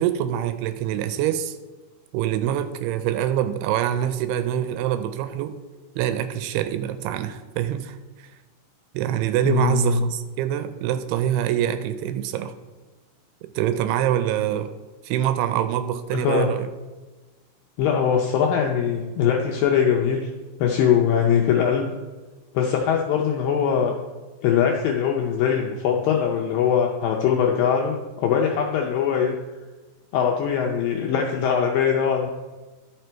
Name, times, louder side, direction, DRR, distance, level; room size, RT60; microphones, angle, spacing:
voice 1, 0.0-1.6 2.1-5.5 6.0-8.3 8.9-12.5 13.6-14.7 15.0-16.7, right 11 dB, 85° right, 10 dB, 2.5 m, -25 dB
voice 2, 9.5-10.1 16.2-16.5 17.8-20.3 20.6-21.9 22.5-23.9 24.4-29.3 30.1-32.3, left 7 dB, 80° left, 1 dB, 2.0 m, -21 dB
12.0 x 5.5 x 4.5 m, 1.2 s
omnidirectional pair, 4.8 m